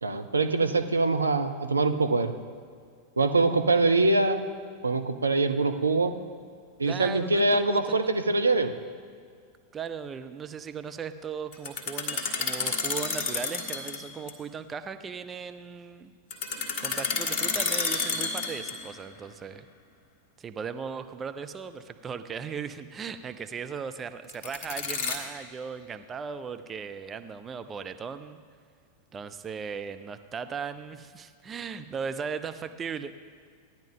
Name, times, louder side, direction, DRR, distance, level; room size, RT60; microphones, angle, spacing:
voice 1, 0.0-2.3 3.2-4.4 4.8-6.1 6.8-8.7, right 3 dB, 75° right, 8 dB, 0.6 m, -24 dB
voice 2, 6.8-8.1 9.7-16.1 16.8-19.7 20.4-28.4 29.1-33.1, right 6 dB, 20° right, 10 dB, 0.5 m, -37 dB
sound 1, 11.5-14.0 14.3-14.4 16.3-19.0 24.3-25.2, left 4 dB, 40° left, 1.5 m, -30 dB
15.5 x 10.5 x 3.7 m, 2.1 s
figure-of-eight pair, 90°, 0 cm